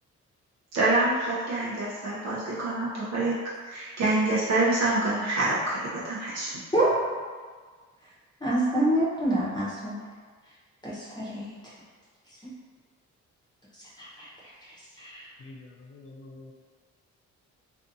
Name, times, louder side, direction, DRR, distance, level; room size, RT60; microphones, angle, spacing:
voice 1, 0.7-3.4 3.7-6.5, right 2 dB, 60° right, -7 dB, 0.6 m, -26 dB
voice 2, 8.4-10.0 10.8-11.5 14.0-14.3 15.0-15.2, right 1 dB, 15° left, -9 dB, 0.8 m, -26 dB
voice 3, 15.4-16.5, left 2 dB, 45° left, 2 dB, 0.4 m, -46 dB
2.5 x 2.4 x 2.6 m, 1.5 s
cardioid pair, 90°, 30 cm